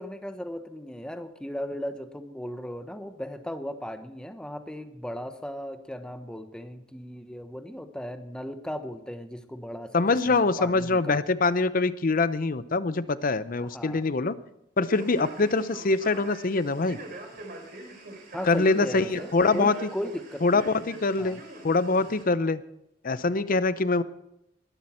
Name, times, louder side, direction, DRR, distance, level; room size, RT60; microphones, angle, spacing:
voice 1, 0.0-11.2 13.6-14.0 18.3-20.7 21.2-21.4, equal, 5° left, 8 dB, 1.0 m, -37 dB
voice 2, 9.9-14.3 14.8-17.0 18.4-19.7 20.4-22.6 23.0-24.0, left 3 dB, 45° left, 15 dB, 0.6 m, -24 dB
Male speech man speaking, 14.9-22.2, right 2 dB, 50° right, 3.4 m, -43 dB
21.0 x 12.0 x 4.4 m, 0.83 s
head